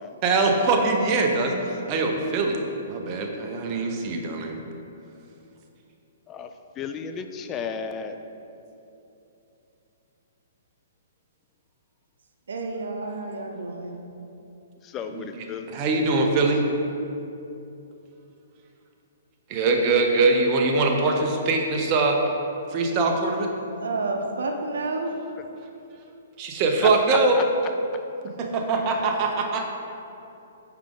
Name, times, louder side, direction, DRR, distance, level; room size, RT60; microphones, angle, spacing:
voice 1, 0.2-4.6 15.0-16.7 19.5-22.2 22.7-23.5 26.4-27.4 28.4-29.7, right 3 dB, 30° right, 2 dB, 0.7 m, -23 dB
voice 2, 6.8-8.2 14.9-15.7 26.8-27.2, left 6 dB, 20° left, 8 dB, 0.3 m, -33 dB
voice 3, 12.5-14.0 23.8-25.1, right 3 dB, 80° right, 3 dB, 0.7 m, -30 dB
5.6 x 4.9 x 3.7 m, 2.8 s
hypercardioid pair, 145°, 0 cm